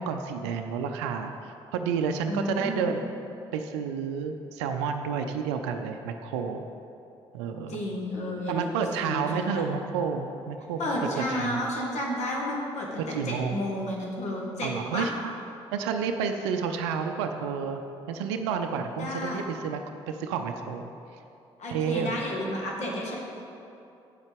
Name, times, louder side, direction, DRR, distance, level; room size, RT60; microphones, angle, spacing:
voice 1, 0.0-3.0 3.5-6.6 7.3-7.8 8.5-10.8 11.2-11.6 13.1-13.7 14.6-15.3 15.7-17.8 18.1-19.8 20.1-20.9 21.7-22.1, right 6 dB, 70° right, 6 dB, 0.5 m, -30 dB
voice 2, 2.3-2.9 7.7-9.6 10.8-15.1 19.0-19.4 21.6-23.1, left 1 dB, 50° left, -2 dB, 1.9 m, -32 dB
8.3 x 7.9 x 5.1 m, 2.7 s
figure-of-eight pair, 45°, 15 cm